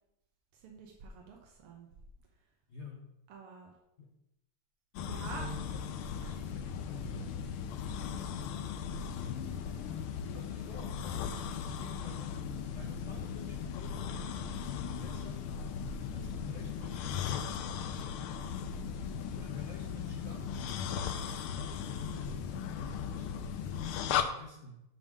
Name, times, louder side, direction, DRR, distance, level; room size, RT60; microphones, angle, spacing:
voice 1, 0.5-1.9 3.3-3.7 5.0-5.5 6.2-6.4, right 4 dB, 90° right, 1 dB, 1.9 m, -47 dB
voice 2, 2.7-3.0 4.0-4.1 4.9-7.5 8.1-8.7 10.3-12.4 12.7-14.2 14.7-15.4 16.1-17.6 19.3-20.8 21.5-24.8, left 4 dB, 50° left, 0 dB, 0.8 m, -49 dB
sound 1, 5.0-24.2, left 7 dB, 80° left, 1.5 m, -37 dB
sound 2, 5.3-11.6, equal, 30° left, 1.3 m, -54 dB
sound 3, 6.3-22.5, equal, 35° right, 1.0 m, -58 dB
8.6 x 3.6 x 6.5 m, 0.86 s
omnidirectional pair, 2.4 m